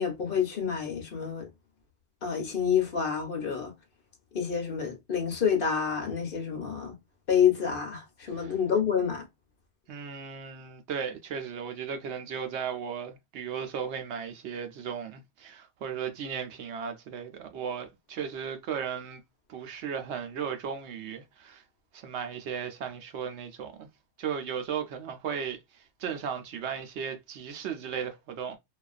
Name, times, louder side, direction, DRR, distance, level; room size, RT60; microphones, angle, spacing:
voice 1, 0.0-1.5 2.2-3.7 4.3-6.9 7.3-9.2, left 7 dB, 55° left, 1.0 m, -28 dB
voice 2, 9.9-19.2 19.5-21.6 21.9-23.9 24.2-28.6, right 7 dB, 80° right, 0.9 m, -36 dB
2.4 x 2.3 x 2.3 m
omnidirectional pair, 1.2 m